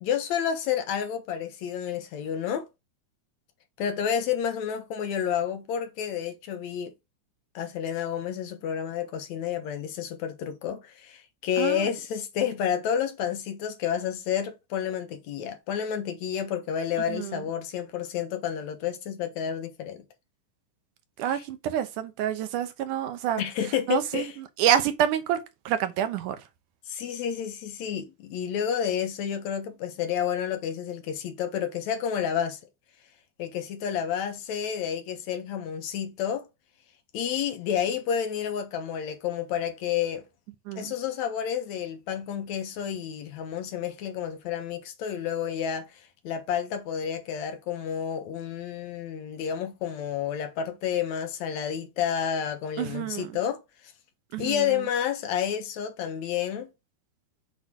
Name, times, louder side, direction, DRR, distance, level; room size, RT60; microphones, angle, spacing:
voice 1, 0.0-2.7 3.8-6.9 7.6-20.0 21.3-21.5 23.4-24.4 26.9-32.6 33.4-36.5 37.1-40.3 40.8-53.9 54.4-56.7, left 8 dB, 70° left, 2.2 m, -30 dB
voice 2, 11.6-11.9 17.1-17.4 21.2-23.4 23.9-24.3 24.6-25.4 25.7-26.4 40.7-40.9 52.8-53.3 54.3-54.7, right 10 dB, 85° right, 2.4 m, -27 dB
8.0 x 4.5 x 3.7 m
omnidirectional pair, 3.5 m